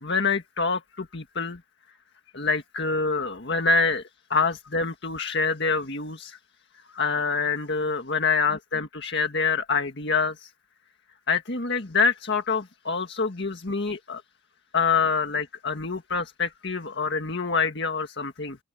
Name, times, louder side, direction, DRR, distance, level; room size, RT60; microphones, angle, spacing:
voice 1, 0.0-1.6 2.3-4.0 4.3-6.4 6.9-10.5 11.3-14.2 14.7-18.6, left 4 dB, 60° left, 1.8 m, -26 dB
open air
head